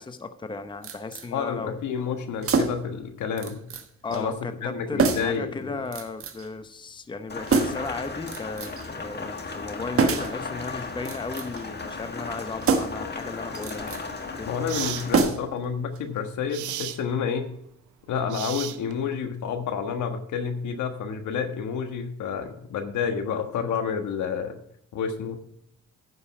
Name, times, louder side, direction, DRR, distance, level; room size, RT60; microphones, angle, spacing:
voice 1, 0.0-1.8 4.0-13.9 14.4-14.5, left 3 dB, 15° left, 9 dB, 0.7 m, -35 dB
sound 1, 0.8-1.3 2.4-2.9 3.4-3.9 4.1-4.2 5.0-5.4 5.9-6.5 7.5-7.9 8.3-8.9 10.0-10.4 11.0-11.7 12.6-13.1 13.5-14.0 15.1-15.6 15.9-16.0, right 4 dB, 50° right, 1.3 m, -25 dB
voice 2, 1.3-3.6 4.1-5.8 14.4-17.5 18.1-24.6 24.9-25.4, left 6 dB, 75° left, 6 dB, 1.5 m, -29 dB
Rain, 7.3-15.2, left 4 dB, 35° left, 1.6 m, -36 dB
sound 2, 13.9-14.0 14.7-15.1 16.5-17.0 18.3-19.1, right 13 dB, 80° right, 0.6 m, -34 dB
9.7 x 5.5 x 7.0 m, 0.74 s
cardioid pair, 90°, 30 cm